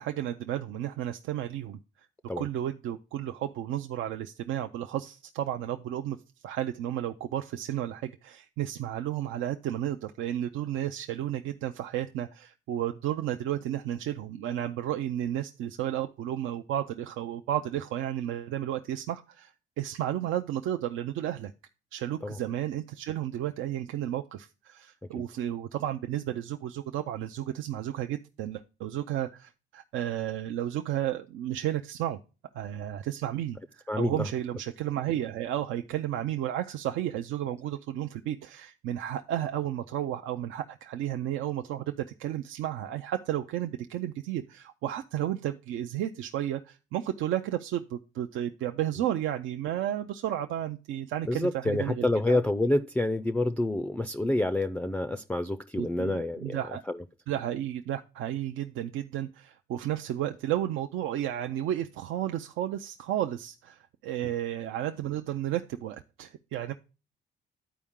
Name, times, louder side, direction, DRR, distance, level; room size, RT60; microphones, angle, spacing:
voice 1, 0.0-1.8 2.4-6.2 6.4-21.5 21.9-32.2 32.5-52.4 55.8-56.8 57.3-66.7, right 12 dB, 85° right, 0.4 m, -32 dB
voice 2, 33.9-34.3 51.3-56.6 56.9-57.0 64.2-64.3, left 2 dB, 5° left, 0.3 m, -28 dB
11.0 x 4.6 x 3.6 m
cardioid pair, 90°, 20 cm